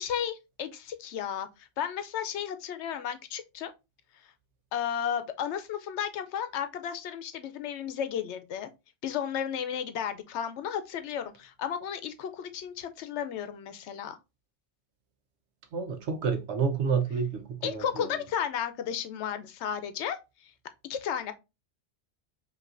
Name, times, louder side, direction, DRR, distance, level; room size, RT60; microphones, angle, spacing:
voice 1, 0.0-3.7 4.7-8.7 9.0-14.2 17.6-20.5 20.9-21.3, left 8 dB, 85° left, 0.9 m, -33 dB
voice 2, 15.7-18.1, right 5 dB, 80° right, 1.0 m, -29 dB
5.3 x 2.8 x 2.4 m
omnidirectional pair, 1.1 m